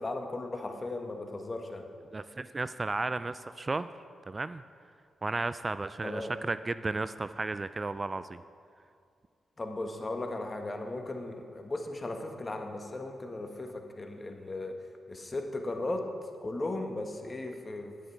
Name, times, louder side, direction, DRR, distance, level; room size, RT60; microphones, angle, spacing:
voice 1, 0.0-1.8 6.0-6.3 9.6-14.8 15.1-16.0 16.4-17.9, left 2 dB, 35° left, 4 dB, 1.3 m, -36 dB
voice 2, 2.1-3.9 4.3-4.6 5.2-8.4, right 3 dB, 35° right, 13 dB, 0.3 m, -34 dB
9.4 x 9.4 x 4.6 m, 2.3 s
supercardioid pair, 45°, 0 cm